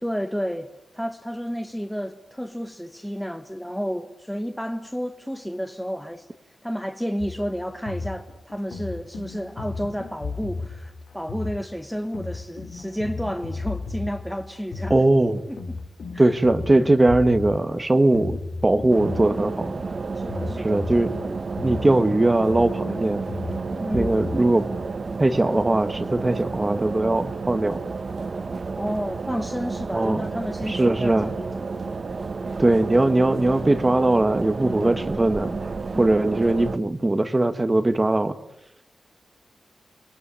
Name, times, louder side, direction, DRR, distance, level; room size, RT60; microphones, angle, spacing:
voice 1, 0.0-6.3 6.6-15.0 15.5-15.8 16.1-16.3 19.3-19.8 20.1-20.8 23.8-24.1 28.8-31.5 35.9-36.2, equal, ahead, 1.0 m, -31 dB
sound 1, 7.2-24.4, left 3 dB, 70° left, 4.1 m, -35 dB
voice 2, 14.9-15.4 16.2-19.8 20.6-23.2 23.9-24.7 25.2-27.8 29.9-30.2 30.7-31.3 32.6-35.6 36.0-38.3, right 2 dB, 20° right, 1.4 m, -20 dB
sound 2, 18.9-36.8, right 4 dB, 40° right, 1.0 m, -31 dB
29.5 x 22.0 x 8.8 m
wide cardioid pair, 170°, 0 cm